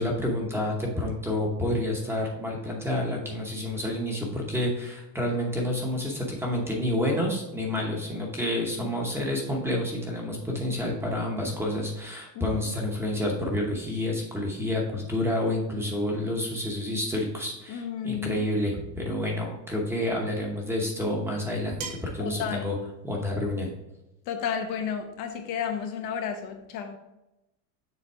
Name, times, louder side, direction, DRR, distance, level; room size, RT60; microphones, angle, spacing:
voice 1, 0.0-21.7 22.0-22.8 23.0-23.7, left 1 dB, 5° right, 0 dB, 0.8 m, -29 dB
voice 2, 17.7-18.5 22.2-22.7 24.3-27.0, left 7 dB, 45° left, 5 dB, 0.6 m, -32 dB
sound 1, 18.3-18.7 20.2-20.3 21.8-22.3, right 5 dB, 65° right, 1.6 m, -39 dB
6.9 x 4.0 x 4.5 m, 0.94 s
cardioid pair, 165°, 46 cm